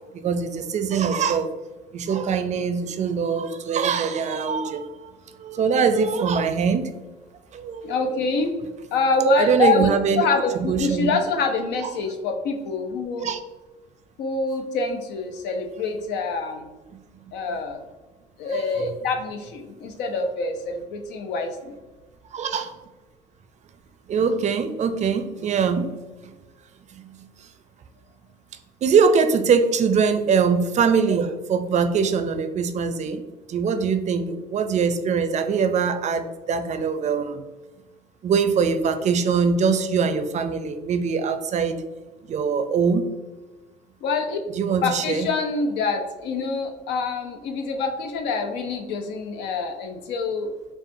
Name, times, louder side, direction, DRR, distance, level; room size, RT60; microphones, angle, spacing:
voice 1, 0.2-1.5 1.9-4.9 5.4-6.9 7.5-8.0 9.4-10.3 10.6-11.1 13.2-13.4 18.5-18.9 22.3-22.7 24.1-25.9 28.8-33.2 33.5-37.4 38.2-41.8 42.3-43.1 44.5-45.3, right 6 dB, 45° right, 9 dB, 0.4 m, -22 dB
voice 2, 7.8-8.5 8.9-9.9 10.2-13.3 14.2-16.7 17.3-17.8 18.4-21.8 44.0-44.4 44.8-50.5, left 3 dB, 85° left, 5 dB, 0.6 m, -25 dB
5.5 x 2.3 x 2.6 m, 1.2 s
cardioid pair, 110°, 17 cm